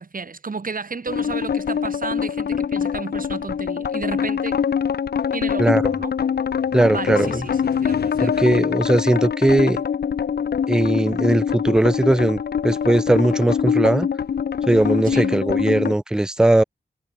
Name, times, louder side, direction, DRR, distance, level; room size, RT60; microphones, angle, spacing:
voice 1, 0.0-4.6 5.3-6.1 6.9-8.5 15.0-15.4, right 4 dB, 60° right, 4.0 m, -33 dB
sound 1, 1.1-15.9, left 7 dB, 90° left, 0.6 m, -24 dB
voice 2, 6.7-7.4 8.2-9.8 10.7-14.1 14.7-16.6, right 1 dB, 5° right, 0.3 m, -19 dB
wide cardioid pair, 95°, 16 cm